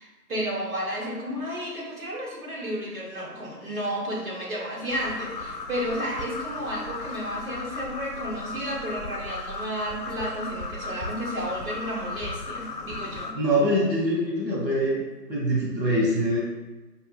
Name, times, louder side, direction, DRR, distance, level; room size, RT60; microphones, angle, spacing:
voice 1, 0.0-13.3, equal, 55° right, -4 dB, 1.2 m, -32 dB
sound 1, 4.9-13.3, left 3 dB, 85° left, 0.7 m, -36 dB
voice 2, 13.3-15.0 15.3-16.4, equal, 85° right, -4 dB, 1.1 m, -23 dB
5.5 x 2.0 x 2.3 m, 1.2 s
figure-of-eight pair, 160°, 49 cm